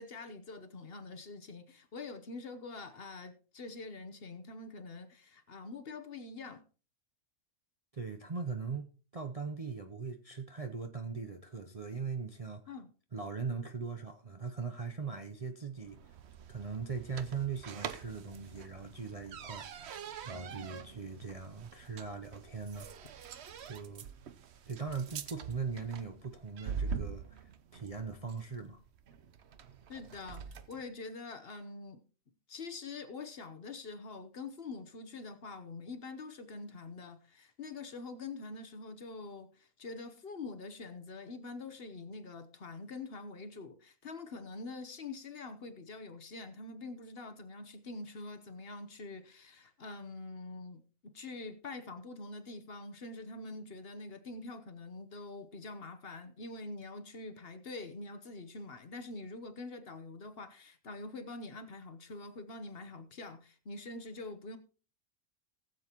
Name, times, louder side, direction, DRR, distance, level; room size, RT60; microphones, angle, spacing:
voice 1, 0.0-6.6 12.7-12.9 29.9-32.0 32.5-64.6, left 3 dB, 50° left, 1.1 m, -45 dB
voice 2, 7.9-8.9 9.1-12.7 13.1-16.1 16.5-23.2 23.6-24.1 24.7-28.8, right 5 dB, 35° right, 0.6 m, -40 dB
sound 1, 15.8-30.9, right 6 dB, 60° right, 0.9 m, -45 dB
19.0 x 7.5 x 3.0 m
omnidirectional pair, 1.4 m